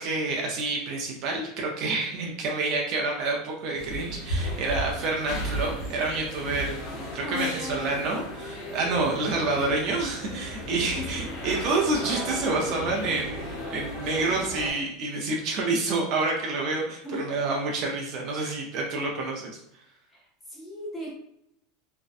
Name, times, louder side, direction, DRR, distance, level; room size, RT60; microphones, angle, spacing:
voice 1, 0.0-19.6, right 3 dB, 35° right, -1 dB, 0.4 m, -28 dB
sound 1, 3.8-14.7, equal, 60° left, 1.1 m, -35 dB
voice 2, 7.2-8.2 10.9-11.2 17.0-17.4 18.4-18.6 20.5-21.1, left 2 dB, 10° left, -4 dB, 0.6 m, -36 dB
2.5 x 2.0 x 2.4 m, 0.76 s
supercardioid pair, 175°, 0 cm